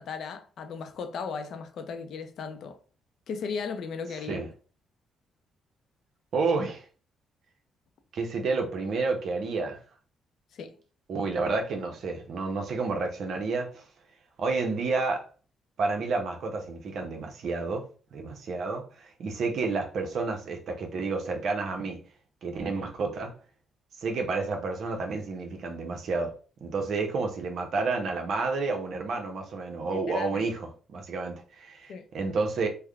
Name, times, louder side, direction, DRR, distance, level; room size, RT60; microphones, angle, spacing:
voice 1, 0.0-2.8 3.3-4.4 10.5-10.8 29.9-30.5 31.9-32.1, left 5 dB, 65° left, 0.5 m, -36 dB
voice 2, 6.3-6.8 8.1-9.8 11.1-13.8 14.4-15.2 15.8-22.0 22.4-23.3 24.0-26.3 26.6-32.7, right 3 dB, 65° right, 0.8 m, -30 dB
3.4 x 2.2 x 3.4 m
cardioid pair, 90°, 0 cm